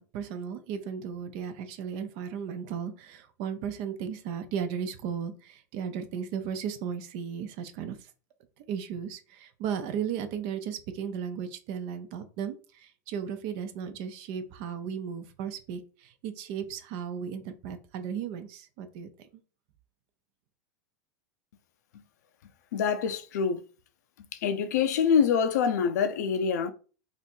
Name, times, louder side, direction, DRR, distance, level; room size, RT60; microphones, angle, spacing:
voice 1, 0.0-8.1 8.7-19.3, right 7 dB, 55° right, 0.7 m, -35 dB
voice 2, 22.7-23.6 24.3-26.7, left 7 dB, 75° left, 0.6 m, -25 dB
3.0 x 2.6 x 4.4 m
hypercardioid pair, 110°, 9 cm